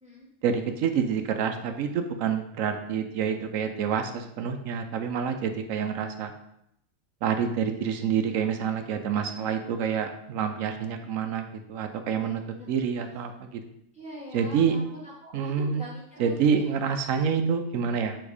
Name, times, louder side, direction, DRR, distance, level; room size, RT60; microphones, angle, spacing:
voice 1, 0.4-6.3 7.2-12.4 12.7-13.6 14.3-14.8 15.3-15.9 16.2-18.2, right 7 dB, 85° right, 6 dB, 1.0 m, -27 dB
voice 2, 9.3-9.7 10.9-11.1 12.1-13.1 13.9-16.7, equal, 5° right, -6 dB, 1.8 m, -45 dB
7.1 x 3.5 x 4.9 m, 0.77 s
omnidirectional pair, 1.4 m